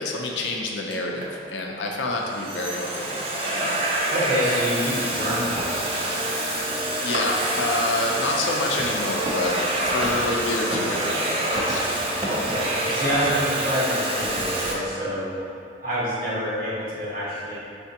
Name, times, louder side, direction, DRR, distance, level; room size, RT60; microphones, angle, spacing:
voice 1, 0.0-4.0 7.0-11.8, left 2 dB, 90° left, 0 dB, 0.5 m, -28 dB
Domestic sounds home sounds, 0.9-1.3 2.0-14.7, right 1 dB, 30° right, 0.5 m, -26 dB
voice 2, 4.1-5.6 12.2-15.5 15.8-17.6, equal, 50° right, -8 dB, 1.3 m, -27 dB
sound 1, 5.3-14.7, left 1 dB, ahead, 0.9 m, -37 dB
4.8 x 3.4 x 2.8 m, 2.3 s
head